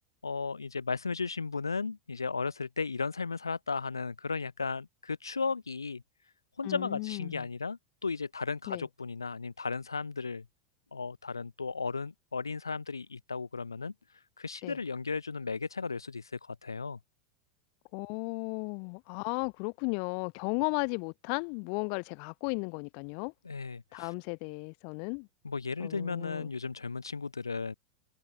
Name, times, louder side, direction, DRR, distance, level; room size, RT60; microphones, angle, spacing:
voice 1, 0.2-6.0 6.6-10.4 10.9-13.9 14.4-17.0 23.4-24.1 25.4-27.7, left 4 dB, 80° left, 1.7 m, -35 dB
voice 2, 6.6-7.5 8.7-8.9 14.6-14.8 17.9-23.3 23.9-25.3 25.8-26.5, left 40 dB or more, 50° left, 0.5 m, -35 dB
figure-of-eight pair, 85°, 2 cm